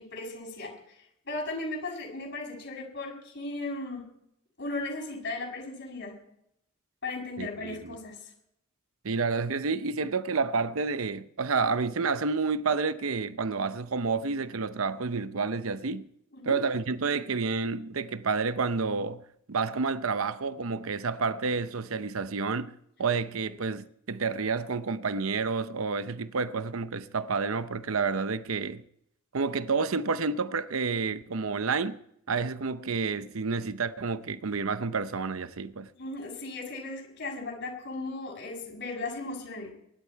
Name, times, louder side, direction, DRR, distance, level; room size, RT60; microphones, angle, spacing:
voice 1, 0.0-4.0 4.6-6.1 7.0-8.3 16.3-16.6 23.5-23.6 35.9-39.7, left 2 dB, 55° left, 6.8 m, -37 dB
voice 2, 7.4-8.0 9.0-16.1 16.4-19.2 19.5-28.8 29.3-32.0 32.3-35.9, right 4 dB, 75° right, 0.7 m, -29 dB
23.5 x 12.0 x 4.6 m
head